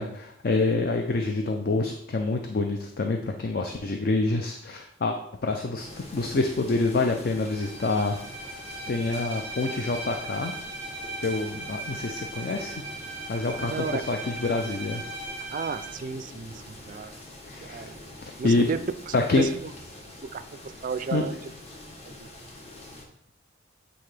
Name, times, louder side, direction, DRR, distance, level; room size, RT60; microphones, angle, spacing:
voice 1, 0.0-5.2 5.4-8.2 8.9-10.5 11.2-12.7 13.3-15.0 17.5-17.9 18.2-18.7 19.1-19.5 21.1-21.2, left 3 dB, 50° left, 4 dB, 0.4 m, -27 dB
sound 1, 5.8-23.1, left 1 dB, 35° left, 1.1 m, -45 dB
Bowed string instrument, 7.4-16.0, right 2 dB, 90° left, 1.4 m, -38 dB
voice 2, 13.6-14.0 15.5-17.2 17.6-18.0 18.4-19.7 20.3-20.4 20.8-21.4 22.2-22.3, right 5 dB, 45° right, 12 dB, 0.3 m, -33 dB
7.8 x 3.9 x 3.3 m, 0.76 s
head